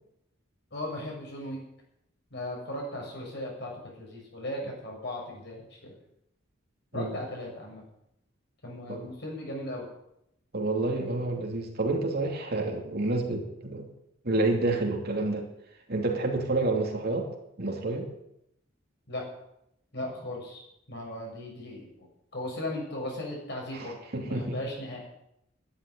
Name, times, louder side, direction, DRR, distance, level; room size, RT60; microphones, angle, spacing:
voice 1, 0.7-1.6 2.3-5.9 6.9-7.8 8.6-9.9 19.1-19.3 19.9-22.1 22.3-25.0, left 1 dB, 60° left, -1 dB, 7.1 m, -37 dB
voice 2, 10.5-13.9 14.2-15.5 15.9-17.3 17.6-18.1 23.7-24.6, right 2 dB, 50° right, 2 dB, 2.8 m, -29 dB
11.5 x 11.5 x 9.2 m, 0.80 s
head